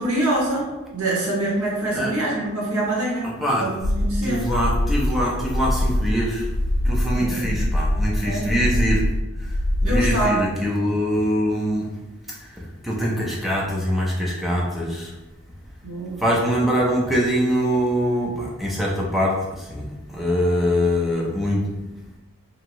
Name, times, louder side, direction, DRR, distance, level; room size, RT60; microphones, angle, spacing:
voice 1, 0.0-3.3 3.6-4.4 7.1-7.6 8.2-8.5 9.8-10.6 15.8-16.2, right 1 dB, 80° right, -5 dB, 1.1 m, -25 dB
voice 2, 3.2-3.7 4.2-6.5 6.8-9.0 9.8-11.9 12.3-12.5 12.8-15.1 16.2-21.6, equal, ahead, -4 dB, 0.4 m, -23 dB
sound 1, 3.8-10.2, left 1 dB, 70° left, 0.4 m, -23 dB
2.9 x 2.7 x 2.6 m, 1.1 s
head